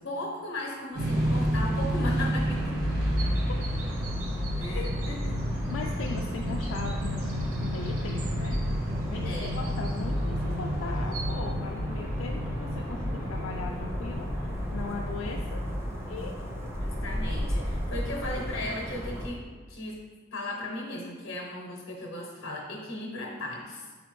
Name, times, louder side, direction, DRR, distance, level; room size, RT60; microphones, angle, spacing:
voice 1, 0.0-2.9 4.5-5.4 9.2-9.6 16.8-19.4 19.7-20.0 20.3-23.9, left 1 dB, 85° left, -1 dB, 0.7 m, -36 dB
sound 1, 0.9-15.7, equal, 50° right, 1.3 m, -32 dB
sound 2, 1.1-19.3, equal, 15° right, 0.5 m, -33 dB
sound 3, 1.9-11.3, right 4 dB, 85° right, 0.7 m, -47 dB
voice 2, 3.2-3.6 4.7-4.9 5.7-8.6 9.1-15.6 16.1-16.3, left 4 dB, 65° left, 1 dB, 0.3 m, -39 dB
4.3 x 4.0 x 3.0 m, 1.4 s
head